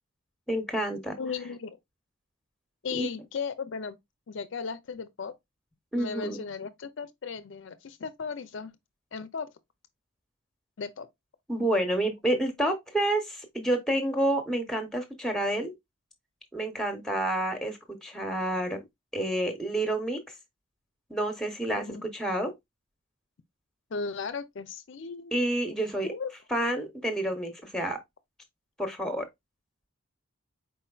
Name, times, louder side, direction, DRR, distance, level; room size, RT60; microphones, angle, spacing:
voice 1, 0.5-1.2 2.9-3.1 5.9-6.4 11.5-15.7 16.5-18.8 19.1-20.2 21.1-22.5 25.3-26.1 26.5-28.0 28.8-29.3, right 1 dB, ahead, 0.8 m, -29 dB
voice 2, 1.2-1.8 2.8-4.0 4.3-5.4 6.0-8.7 9.1-9.5 10.8-11.1 21.9-22.1 23.9-25.3 26.0-26.3, left 5 dB, 55° left, 0.4 m, -36 dB
4.5 x 4.3 x 2.3 m
head